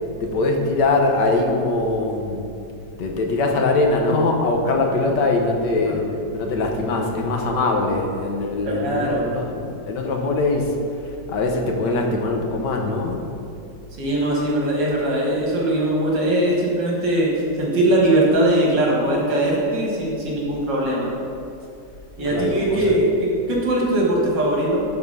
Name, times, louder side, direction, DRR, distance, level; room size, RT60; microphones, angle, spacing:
voice 1, 0.2-2.4 3.0-6.1 6.3-13.2 22.3-23.0, left 2 dB, 70° left, 2 dB, 1.5 m, -22 dB
voice 2, 8.7-9.3 14.0-17.3 17.6-21.1 22.2-24.8, right 1 dB, 70° right, -3 dB, 2.4 m, -20 dB
11.0 x 4.3 x 5.4 m, 2.6 s
omnidirectional pair, 2.0 m